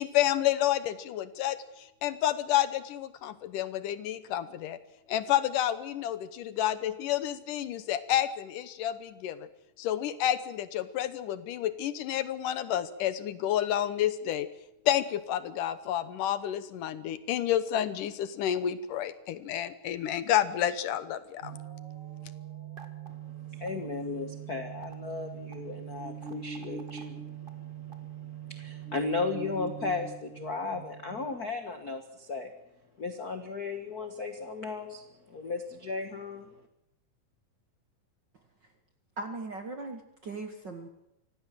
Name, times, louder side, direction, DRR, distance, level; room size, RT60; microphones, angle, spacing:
voice 1, 0.0-4.8 5.1-9.5 9.8-14.5 14.9-21.5, left 11 dB, 75° left, 13 dB, 2.5 m, -30 dB
sound 1, 21.4-31.3, right 8 dB, 25° right, 1.1 m, -42 dB
voice 2, 23.1-32.5 33.0-36.5, left 4 dB, 45° left, 6 dB, 1.2 m, -36 dB
voice 3, 39.2-40.9, right 3 dB, 45° right, 6 dB, 1.5 m, -39 dB
25.0 x 17.0 x 7.6 m, 0.83 s
omnidirectional pair, 3.9 m